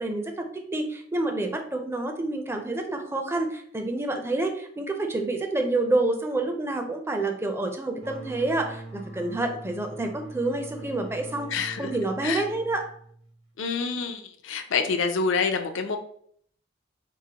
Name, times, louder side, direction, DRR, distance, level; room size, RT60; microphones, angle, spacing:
voice 1, 0.0-11.5 11.8-12.8, right 2 dB, 15° right, 4 dB, 0.4 m, -28 dB
sound 1, 8.0-13.4, right 2 dB, 90° right, 1.5 m, -42 dB
voice 2, 11.5-11.9 12.2-12.4 13.6-16.0, left 5 dB, 80° left, 6 dB, 0.5 m, -27 dB
4.6 x 2.1 x 2.8 m, 0.63 s
head